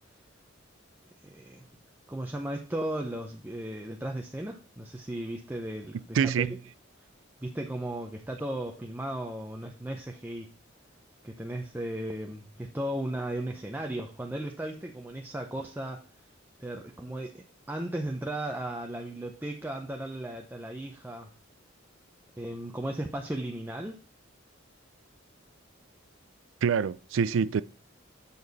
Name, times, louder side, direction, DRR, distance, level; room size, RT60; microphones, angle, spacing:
voice 1, 1.2-1.7 2.1-6.5 7.4-10.5 11.2-16.0 16.6-21.3 22.4-24.0, right 1 dB, 10° right, 0.6 m, -36 dB
voice 2, 6.1-6.5 26.6-27.6, right 6 dB, 70° right, 0.4 m, -25 dB
6.9 x 6.4 x 4.0 m
head